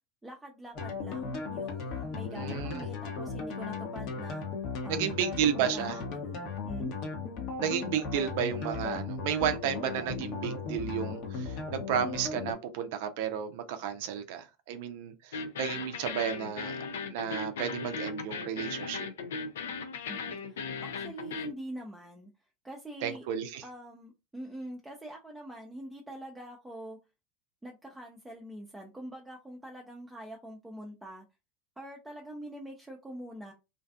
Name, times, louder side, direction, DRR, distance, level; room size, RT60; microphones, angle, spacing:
voice 1, 0.2-4.4 4.8-5.1 5.5-6.9 20.1-22.3 22.6-23.3 23.6-27.0 27.6-31.2 31.8-33.5, right 1 dB, 10° right, 0.5 m, -44 dB
sound 1, 0.7-12.5, left 4 dB, 55° left, 0.8 m, -36 dB
voice 2, 2.3-2.9 4.9-6.0 7.6-16.8 17.1-19.1 23.0-23.6, right 9 dB, 65° right, 0.4 m, -32 dB
sound 2, 15.3-21.5, left 5 dB, 75° left, 0.3 m, -37 dB
2.5 x 2.4 x 2.3 m
hypercardioid pair, 85°, 0 cm